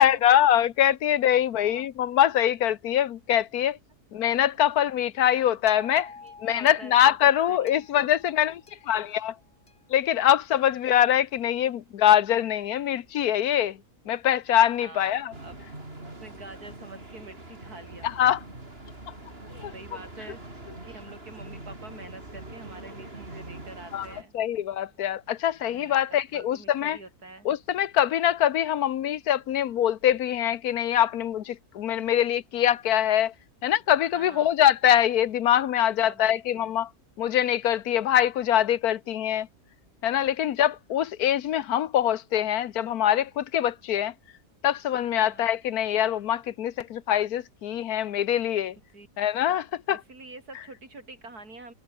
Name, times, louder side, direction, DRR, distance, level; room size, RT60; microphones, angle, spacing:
voice 1, 0.0-3.8 4.1-6.1 6.4-9.3 9.9-13.8 14.1-15.3 18.0-18.4 19.6-19.7 23.9-24.1 24.3-27.0 27.4-33.3 33.6-36.9 37.2-39.5 40.0-44.1 44.6-48.7 49.2-50.0, left 11 dB, 75° left, 1.3 m, -23 dB
voice 2, 1.6-1.9 2.9-3.0 6.2-7.2 7.5-7.9 14.8-15.6 16.2-18.1 19.7-20.4 20.8-24.3 25.6-27.5 34.1-34.5 36.0-36.8 40.2-40.4 45.2-45.5 48.9-49.1 49.9-51.7, right 2 dB, 80° right, 5.8 m, -46 dB
sound 1, 5.7-10.0 10.7-10.8, left 4 dB, 60° left, 2.6 m, -48 dB
sound 2, 15.3-24.2, right 2 dB, 40° right, 5.0 m, -43 dB
omnidirectional pair, 1.6 m